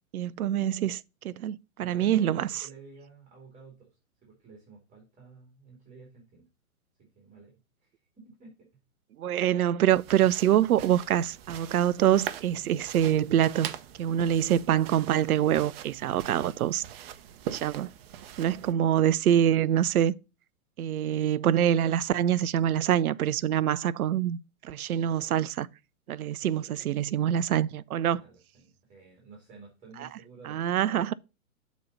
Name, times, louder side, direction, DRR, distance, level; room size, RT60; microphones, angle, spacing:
voice 1, 0.1-2.6 9.2-13.7 14.0-16.8 17.5-17.9 18.4-20.1 20.8-25.7 26.1-28.2 30.5-31.1, right 10 dB, 80° right, 0.5 m, -25 dB
voice 2, 1.8-3.9 4.2-6.5 7.0-7.5 7.8-7.9 8.2-8.7 18.2-19.0 26.1-26.2 28.2-30.8, right 4 dB, 15° right, 2.7 m, -52 dB
sound 1, 9.9-18.7, right 10 dB, 45° right, 0.8 m, -42 dB
7.0 x 4.1 x 5.3 m
hypercardioid pair, 115°, 43 cm